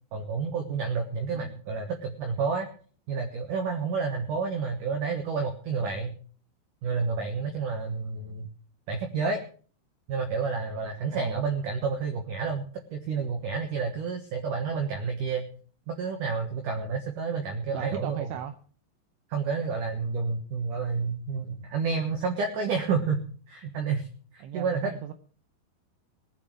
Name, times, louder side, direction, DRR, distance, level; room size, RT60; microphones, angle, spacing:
voice 1, 0.1-2.7 3.1-6.2 6.8-8.5 8.9-9.4 10.1-15.5 15.9-18.3 19.3-24.1 24.3-24.9, right 5 dB, 60° right, 5 dB, 2.3 m, -30 dB
voice 2, 11.1-11.4 17.7-18.6 24.4-25.1, right 10 dB, 75° right, 8 dB, 2.7 m, -37 dB
19.5 x 8.3 x 6.1 m, 0.44 s
omnidirectional pair, 5.2 m